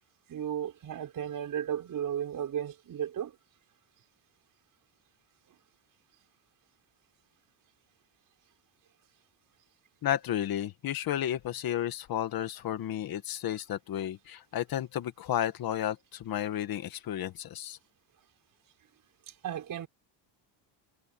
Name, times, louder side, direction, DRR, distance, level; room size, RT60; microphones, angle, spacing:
voice 1, 0.3-3.3 19.4-19.9, right 9 dB, 45° right, 5.5 m, -34 dB
voice 2, 10.0-17.8, left 11 dB, 50° left, 1.7 m, -32 dB
cardioid pair, 160°, 46 cm